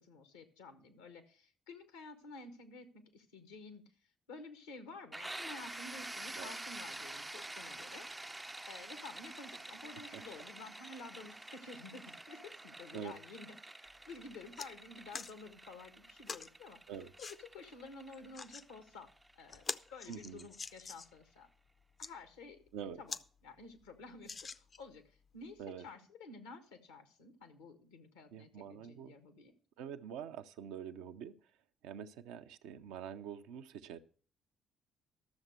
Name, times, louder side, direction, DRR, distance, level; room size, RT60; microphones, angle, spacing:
voice 1, 0.0-3.9 4.3-8.1 8.7-16.8 17.2-19.1 19.3-19.6 19.9-21.5 22.0-23.2 23.4-29.5, left 3 dB, 85° left, 1.4 m, -52 dB
sound 1, 5.1-20.7, right 2 dB, 15° right, 0.4 m, -48 dB
sound 2, 13.9-14.0 14.3-14.7 15.1-15.3 16.3-16.5 17.2-17.4 18.1-18.7 19.1-19.2 19.5-21.2 21.8-22.1 22.7-22.8 23.1-23.3 23.6-23.7 24.2-24.9 25.6-25.7, left 4 dB, 45° left, 0.6 m, -44 dB
voice 2, 20.1-20.5 22.7-23.0 25.6-25.8 28.3-29.1 29.8-31.3 31.8-34.0, right 8 dB, 75° right, 0.6 m, -45 dB
12.5 x 7.2 x 6.5 m
hypercardioid pair, 45°, 0 cm